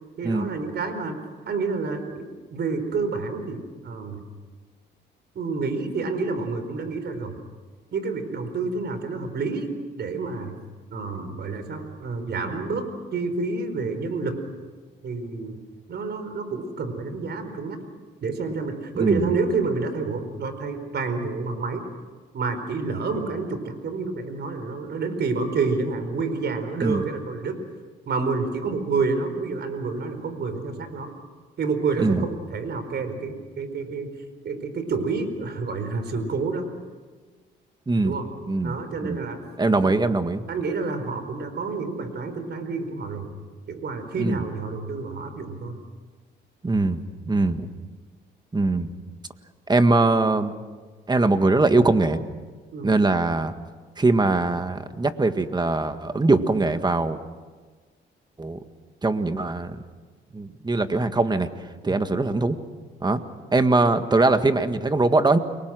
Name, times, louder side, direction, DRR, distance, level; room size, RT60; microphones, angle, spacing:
voice 1, 0.2-1.2 1.4-2.3 2.5-4.2 5.3-7.4 7.9-10.6 10.9-14.4 15.0-15.6 15.9-17.8 18.2-21.8 22.3-27.6 28.1-31.1 31.6-34.1 34.4-36.7 38.0-38.3 38.6-39.4 39.8-40.0 40.5-43.3 43.7-45.8 52.7-52.9 61.8-62.0, right 4 dB, 55° right, 8 dB, 4.6 m, -28 dB
voice 2, 19.0-19.3 26.8-27.0 32.0-32.3 37.9-38.2 38.5-39.2 39.6-40.4 44.2-44.4 46.6-47.7 48.5-48.9 49.7-50.6 51.1-52.2 52.8-53.5 54.0-57.2 58.4-58.6 59.0-59.8 60.3-61.5 61.8-62.6 63.0-63.2 63.5-65.4, right 3 dB, 20° right, 9 dB, 1.8 m, -22 dB
30.0 x 23.0 x 6.3 m, 1.4 s
cardioid pair, 90°, 20 cm